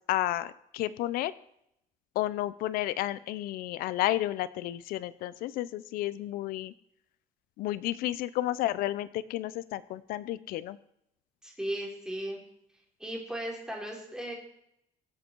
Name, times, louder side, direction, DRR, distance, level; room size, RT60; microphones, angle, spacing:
voice 1, 0.1-1.3 2.2-6.7 7.6-10.8, left 15 dB, 90° left, 16 dB, 0.6 m, -31 dB
voice 2, 11.4-12.4 13.0-14.3, right 1 dB, 5° right, -1 dB, 4.0 m, -36 dB
23.5 x 8.0 x 4.6 m, 0.75 s
cardioid pair, 150°, 15 cm